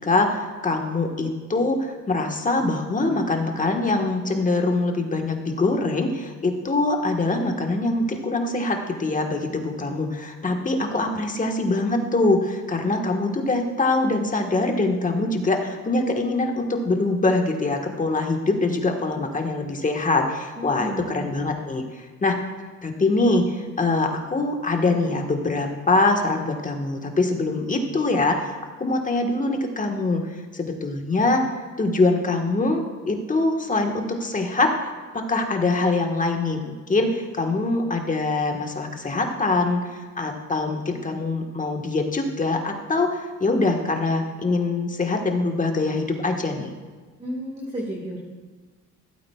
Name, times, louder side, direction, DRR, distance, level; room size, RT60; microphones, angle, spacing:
voice 1, 0.0-22.4 22.8-31.4 31.8-46.7, left 2 dB, 25° left, 3 dB, 1.4 m, -24 dB
voice 2, 20.6-21.2 47.2-48.2, right 1 dB, 20° right, -2 dB, 1.6 m, -32 dB
16.0 x 8.7 x 2.3 m, 1.4 s
cardioid pair, 90°, 30 cm